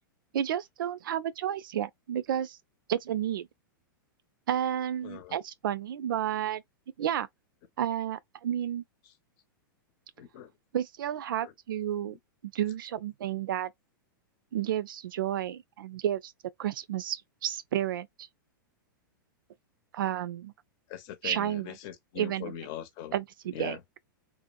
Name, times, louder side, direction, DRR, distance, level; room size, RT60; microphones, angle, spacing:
voice 1, 0.3-2.6 2.9-3.5 4.5-6.6 7.0-7.3 7.8-8.8 10.7-12.2 12.5-13.7 14.5-16.3 16.6-18.3 19.9-20.5 21.2-21.7 22.2-22.5 23.1-24.0, right 10 dB, 75° right, 0.4 m, -31 dB
voice 2, 5.0-5.4 9.0-9.1 10.2-10.5 11.4-11.5 11.9-12.2 20.9-23.2 23.5-23.8, left 10 dB, 45° left, 0.8 m, -41 dB
2.6 x 2.0 x 2.4 m
hypercardioid pair, 115°, 11 cm